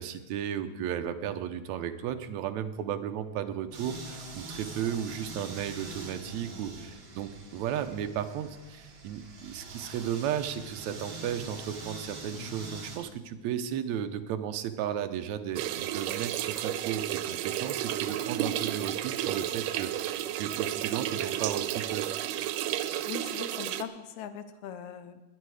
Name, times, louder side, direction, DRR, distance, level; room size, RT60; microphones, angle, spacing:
voice 1, 0.0-22.1, right 9 dB, 70° right, 8 dB, 1.9 m, -34 dB
sound 1, 3.7-13.0, right 2 dB, 50° right, 3.4 m, -44 dB
sound 2, 15.6-23.8, right 12 dB, 90° right, 2.3 m, -32 dB
voice 2, 23.0-25.2, left 8 dB, 70° left, 11 dB, 2.1 m, -40 dB
19.0 x 10.5 x 4.9 m, 1.1 s
omnidirectional pair, 3.7 m